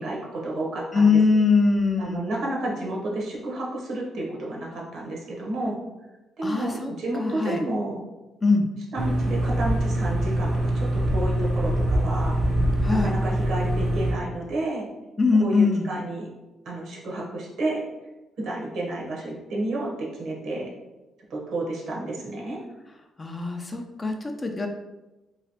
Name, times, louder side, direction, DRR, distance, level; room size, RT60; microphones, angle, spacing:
voice 1, 0.0-1.2 2.0-5.8 6.4-8.0 8.9-12.4 12.9-14.9 15.4-16.3 16.6-17.8 18.4-20.7 21.3-22.6, right 1 dB, 70° right, -2 dB, 0.9 m, -31 dB
voice 2, 0.9-2.2 6.4-6.9 7.2-7.6 8.4-8.7 12.8-13.1 15.2-15.9 23.2-24.7, left 4 dB, 25° left, 4 dB, 0.4 m, -22 dB
sound 1, 9.0-14.1, right 1 dB, 40° right, 0.6 m, -24 dB
3.1 x 2.8 x 2.8 m, 1.0 s
cardioid pair, 90°, 0 cm